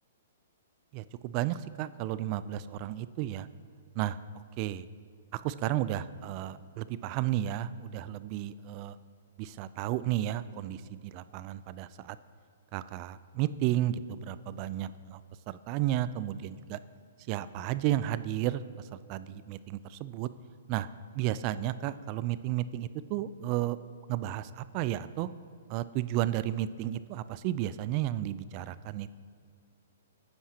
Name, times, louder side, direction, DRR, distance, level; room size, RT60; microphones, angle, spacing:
voice 1, 0.9-3.5 4.0-4.2 4.6-4.9 5.3-9.0 9.4-12.2 12.7-15.2 15.5-16.8 17.3-18.6 18.9-20.3 20.7-20.9 21.2-23.8 24.1-25.3 25.7-29.1, right 13 dB, 40° right, 15 dB, 0.4 m, -33 dB
17.5 x 9.7 x 2.9 m, 2.1 s
hypercardioid pair, 135°, 0 cm